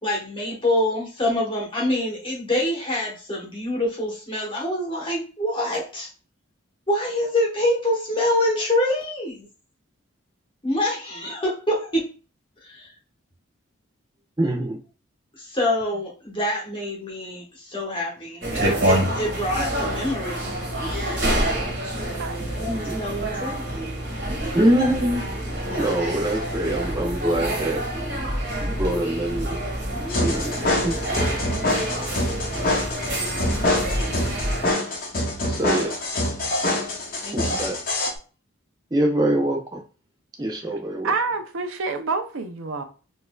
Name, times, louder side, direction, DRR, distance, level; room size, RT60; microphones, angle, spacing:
voice 1, 0.0-6.1 6.9-9.4 10.6-12.0 12.6-12.9 15.3-20.6 20.9-21.2 22.5-23.7 37.2-37.4, left 1 dB, 25° left, 1.0 m, -26 dB
voice 2, 14.4-14.8 22.7-22.9 24.5-25.2 25.8-27.8 28.6-29.6 30.1-30.5 30.8-31.0 35.5-35.9 37.3-37.8 38.9-39.8 40.4-41.1, right 1 dB, 20° right, 0.5 m, -24 dB
sound 1, 18.4-34.7, right 1 dB, 55° right, 1.7 m, -27 dB
sound 2, 30.1-38.1, left 1 dB, 45° left, 0.7 m, -25 dB
voice 3, 41.0-42.8, right 4 dB, 75° right, 0.5 m, -27 dB
4.0 x 2.6 x 2.3 m
head